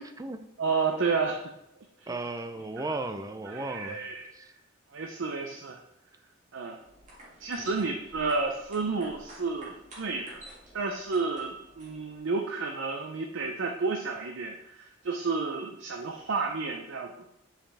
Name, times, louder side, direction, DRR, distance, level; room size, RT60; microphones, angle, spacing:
voice 1, 0.0-0.4 2.1-4.0 4.3-4.5 7.6-7.7, right 2 dB, 15° right, 8 dB, 0.4 m, -35 dB
voice 2, 0.6-1.5 2.0-2.2 3.5-4.5 4.9-5.8 6.5-6.8 7.4-10.4 10.7-17.1, right 4 dB, 65° right, 2 dB, 0.6 m, -31 dB
sound 1, 6.8-12.2, right 1 dB, 35° right, 1.9 m, -51 dB
7.6 x 5.1 x 3.4 m, 0.85 s
head